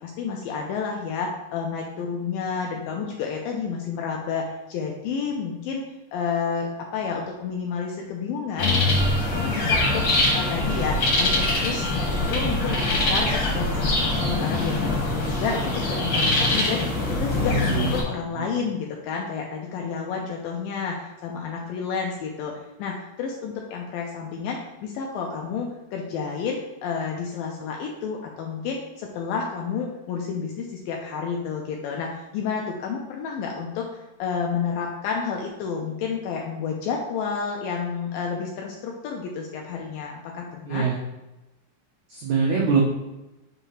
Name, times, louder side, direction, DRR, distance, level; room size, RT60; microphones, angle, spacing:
voice 1, 0.0-5.8 6.1-8.8 9.3-22.5 22.8-40.9, left 6 dB, 80° left, 0 dB, 2.0 m, -30 dB
sound 1, 8.6-18.0, left 2 dB, 55° left, 1.4 m, -23 dB
voice 2, 17.3-17.9 18.4-18.5 40.7-41.0 42.1-42.8, right 5 dB, 90° right, -4 dB, 1.6 m, -24 dB
6.9 x 2.7 x 5.6 m, 1.0 s
omnidirectional pair, 4.6 m